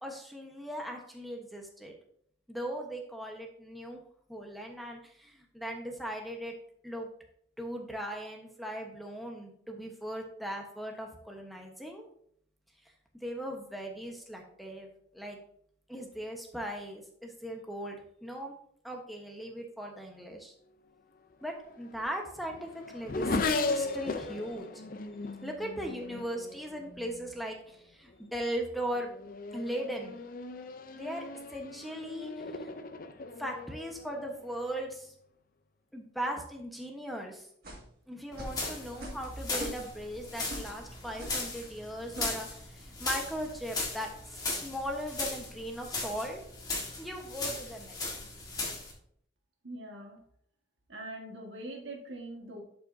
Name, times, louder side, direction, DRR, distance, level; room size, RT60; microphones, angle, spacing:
voice 1, 0.0-1.9 2.5-4.0 4.3-6.6 6.8-7.1 7.6-12.1 13.2-14.9 15.1-15.4 15.9-18.5 18.8-20.5 21.4-24.7 25.4-29.1 29.5-30.2 30.9-32.7 33.4-35.1 35.9-37.5 38.1-46.4 47.0-48.2, equal, ahead, 1 dB, 1.1 m, -38 dB
Race car auto racing / Accelerating revving vroom, 21.4-27.3 28.1-28.5 28.9-34.8, left 3 dB, 50° left, 0.5 m, -37 dB
sound 1, 37.6-37.9 38.4-38.6 39.0-39.3 39.5-40.0 40.5-40.7 41.2-41.4 42.1-42.4, equal, 55° right, 2.0 m, -41 dB
sound 2, 38.3-48.9, left 3 dB, 20° left, 1.6 m, -38 dB
voice 2, 49.6-50.2 50.9-52.6, right 1 dB, 75° right, 1 dB, 1.7 m, -42 dB
11.5 x 5.5 x 2.7 m, 0.66 s
head